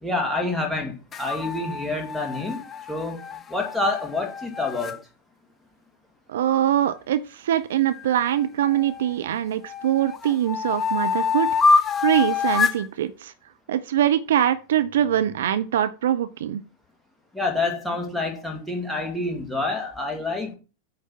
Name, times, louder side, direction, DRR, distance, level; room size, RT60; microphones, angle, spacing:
voice 1, 0.0-2.6 2.9-3.2 3.5-5.0 17.3-20.6, left 2 dB, ahead, 2.0 m, -27 dB
sound 1, 1.1-5.0 7.9-9.2 9.7-12.9, left 5 dB, 20° left, 0.5 m, -26 dB
voice 2, 6.3-13.3 13.7-16.6, right 11 dB, 60° right, 0.4 m, -23 dB
8.7 x 3.3 x 5.9 m
figure-of-eight pair, 90°, 0 cm